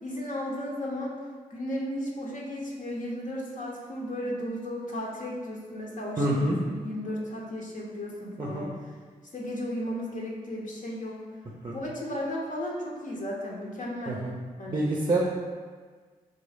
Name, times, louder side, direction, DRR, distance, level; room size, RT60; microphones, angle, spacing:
voice 1, 0.0-1.2 1.5-8.7 9.3-11.2 11.7-14.2 14.6-14.9, equal, 50° left, -3 dB, 0.9 m, -34 dB
voice 2, 6.2-6.6 8.4-8.7 11.6-11.8 14.1-14.3 14.7-15.2, right 1 dB, 25° right, -2 dB, 0.5 m, -27 dB
3.6 x 2.6 x 3.5 m, 1.5 s
supercardioid pair, 45°, 17 cm